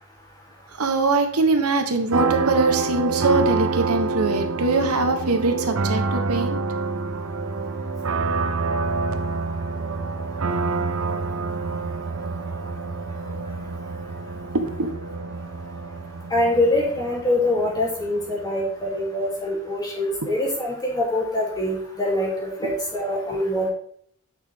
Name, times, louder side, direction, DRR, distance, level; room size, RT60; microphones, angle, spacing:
voice 1, 0.8-6.6 14.5-14.9 22.6-22.7, right 3 dB, 85° right, 6 dB, 1.1 m, -22 dB
sound 1, 2.1-18.6, right 3 dB, 65° right, 0.6 m, -27 dB
voice 2, 16.3-23.7, left 1 dB, 20° left, -5 dB, 2.9 m, -24 dB
9.4 x 6.1 x 3.6 m, 0.64 s
head